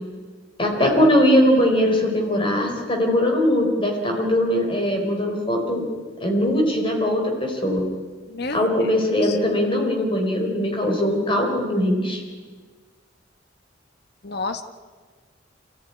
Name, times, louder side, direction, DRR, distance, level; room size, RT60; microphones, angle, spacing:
voice 1, 0.6-5.8 6.2-7.8 8.5-12.2, equal, 25° left, 2 dB, 4.2 m, -20 dB
voice 2, 8.3-8.6 9.2-9.4 14.2-14.6, left 3 dB, 55° left, 9 dB, 1.3 m, -29 dB
26.5 x 15.0 x 9.8 m, 1.5 s
head